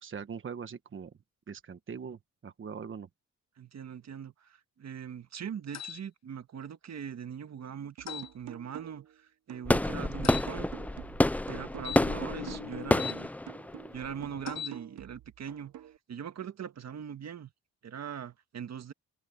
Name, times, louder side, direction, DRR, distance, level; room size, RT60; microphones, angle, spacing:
voice 1, 0.0-1.1 1.5-3.1, right 6 dB, 40° right, 1.3 m, -41 dB
voice 2, 3.6-10.7 11.5-13.3 13.9-15.7 16.1-17.5 17.8-18.9, right 8 dB, 55° right, 1.8 m, -41 dB
sound 1, 5.7-6.0 8.1-8.3 10.2-10.5 11.8-13.2 14.4-14.8, left 10 dB, 55° left, 1.0 m, -39 dB
sound 2, 8.0-9.1 9.5-13.0 13.5-16.0, right 13 dB, 70° right, 0.9 m, -47 dB
sound 3, 9.7-14.6, left 1 dB, 5° left, 0.3 m, -29 dB
cardioid pair, 100°, 31 cm